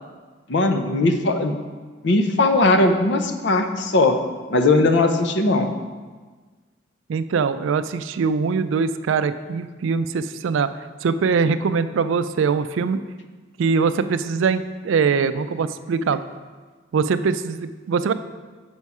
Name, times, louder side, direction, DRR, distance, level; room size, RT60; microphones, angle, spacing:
voice 1, 0.5-1.6 2.0-4.2 4.5-5.7, left 2 dB, 65° left, 6 dB, 0.6 m, -19 dB
voice 2, 7.1-10.7 11.0-13.0 13.6-16.2 16.9-18.1, right 5 dB, 75° right, 12 dB, 0.3 m, -22 dB
7.1 x 5.4 x 4.7 m, 1.4 s
head